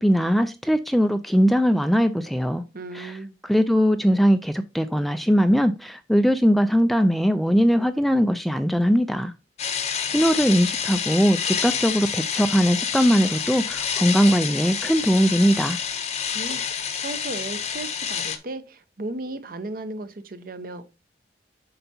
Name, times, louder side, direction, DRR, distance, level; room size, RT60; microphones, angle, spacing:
voice 1, 0.0-2.6 2.9-3.1 3.5-9.3 10.1-15.8, equal, ahead, 0.3 m, -20 dB
voice 2, 2.7-3.3 16.3-20.8, right 2 dB, 50° right, 0.8 m, -35 dB
sound 1, 9.6-18.4, left 7 dB, 40° left, 0.8 m, -28 dB
7.8 x 5.6 x 2.7 m
head